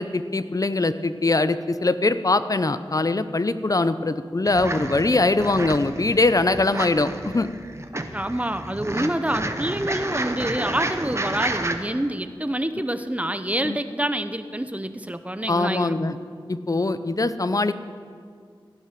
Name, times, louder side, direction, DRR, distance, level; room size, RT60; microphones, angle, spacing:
voice 1, 0.0-7.5 8.9-9.1 13.6-13.8 15.5-16.1 16.5-17.7, left 2 dB, 40° left, 12 dB, 0.6 m, -22 dB
sound 1, 4.5-11.8, right 2 dB, 30° right, 1.1 m, -30 dB
voice 2, 8.1-16.2, right 1 dB, 15° right, 10 dB, 0.8 m, -27 dB
15.5 x 10.5 x 5.9 m, 2.1 s
wide cardioid pair, 50°, 9 cm